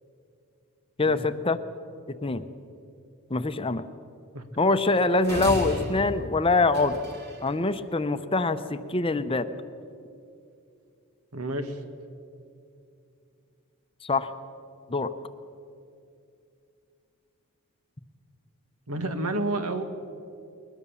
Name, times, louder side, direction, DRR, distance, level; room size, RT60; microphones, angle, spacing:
voice 1, 1.0-1.6 2.1-2.4 3.3-3.8 4.6-7.0 7.4-9.5 14.0-14.3 14.9-15.1, left 3 dB, 25° left, 10 dB, 0.7 m, -24 dB
sound 1, 5.2-7.5, equal, 45° right, 2.7 m, -34 dB
voice 2, 11.3-11.8 18.9-19.8, right 2 dB, 80° right, 8 dB, 1.7 m, -30 dB
21.0 x 21.0 x 7.1 m, 2.5 s
head